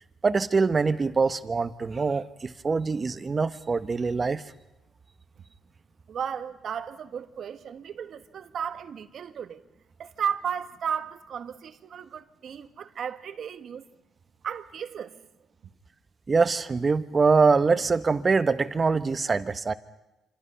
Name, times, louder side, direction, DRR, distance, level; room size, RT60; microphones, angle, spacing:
voice 1, 0.2-4.4 16.3-19.7, right 4 dB, 35° right, 1.2 m, -24 dB
voice 2, 6.1-9.6 10.0-13.8 14.4-15.2, right 7 dB, 60° right, 1.5 m, -34 dB
27.0 x 26.5 x 5.8 m
cardioid pair, 90°, 0 cm